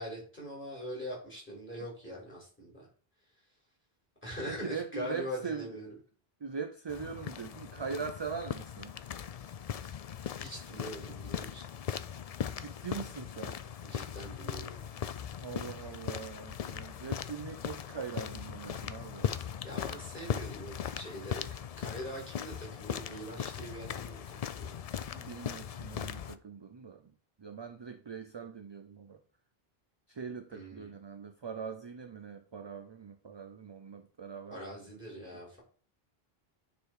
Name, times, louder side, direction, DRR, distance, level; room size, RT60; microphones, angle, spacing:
voice 1, 0.0-2.9 4.2-6.0 10.4-11.6 13.8-14.8 19.4-21.4 21.8-24.7 30.5-30.9 34.5-35.6, equal, 10° left, 4.8 m, -42 dB
voice 2, 4.5-5.8 6.4-8.9 12.6-13.6 15.4-19.3 25.1-27.1 27.4-29.2 30.1-34.6 34.9-35.0, right 6 dB, 35° right, 0.4 m, -41 dB
sound 1, 6.9-26.4, left 8 dB, 55° left, 0.4 m, -39 dB
9.4 x 4.1 x 4.8 m
omnidirectional pair, 1.0 m